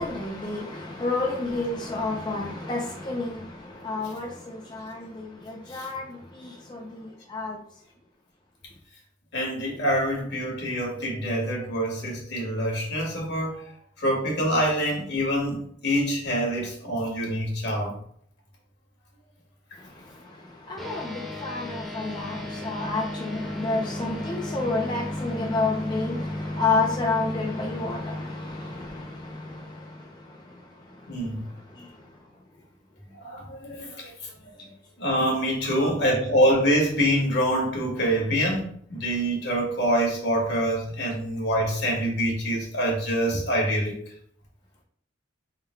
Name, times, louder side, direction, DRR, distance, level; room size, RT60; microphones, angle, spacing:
voice 1, 0.0-7.6 19.7-32.3 33.9-34.0 34.6-34.7 35.6-36.0, left 3 dB, 25° left, 0.4 m, -31 dB
voice 2, 9.3-13.7 14.0-18.0 31.1-31.4 33.2-34.1 35.0-44.0, equal, 60° left, 1.5 m, -25 dB
sound 1, 20.8-30.5, left 1 dB, ahead, 0.8 m, -35 dB
3.6 x 2.3 x 4.3 m
head